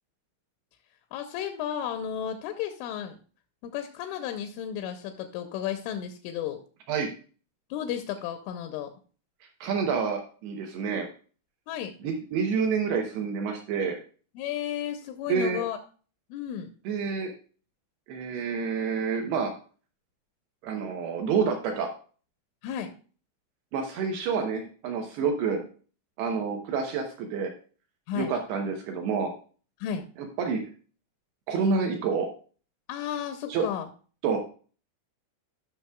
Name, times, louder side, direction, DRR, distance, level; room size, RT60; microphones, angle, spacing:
voice 1, 1.1-3.2 3.7-6.6 7.7-8.9 11.7-11.9 14.4-15.8 16.3-16.7 22.6-22.9 25.5-25.6 28.1-28.3 29.8-30.0 32.9-33.9, left 9 dB, 85° left, 6 dB, 3.0 m, -33 dB
voice 2, 9.6-11.1 12.0-14.0 15.3-15.6 16.9-17.3 18.1-19.5 20.6-21.9 23.7-25.6 26.2-27.5 28.2-29.3 30.4-30.6 31.5-32.3 33.5-33.7 34.2-34.4, right 5 dB, 75° right, 3 dB, 2.4 m, -28 dB
15.0 x 6.0 x 2.3 m, 0.39 s
omnidirectional pair, 5.9 m